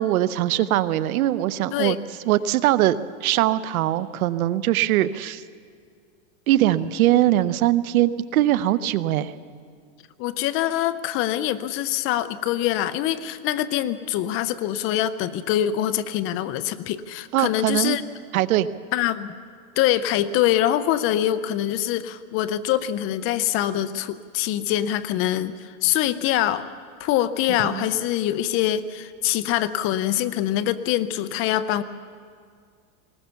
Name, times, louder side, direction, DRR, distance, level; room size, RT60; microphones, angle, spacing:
voice 1, 0.0-2.0 2.3-5.4 6.5-9.3 17.3-18.0 18.3-18.7 27.6-28.0, right 14 dB, 75° right, 15 dB, 0.9 m, -21 dB
voice 2, 10.2-18.0 18.9-19.3 19.8-26.7 27.0-31.8, left 12 dB, 30° left, 14 dB, 0.6 m, -24 dB
20.0 x 19.5 x 6.9 m, 2.1 s
supercardioid pair, 150°, 42 cm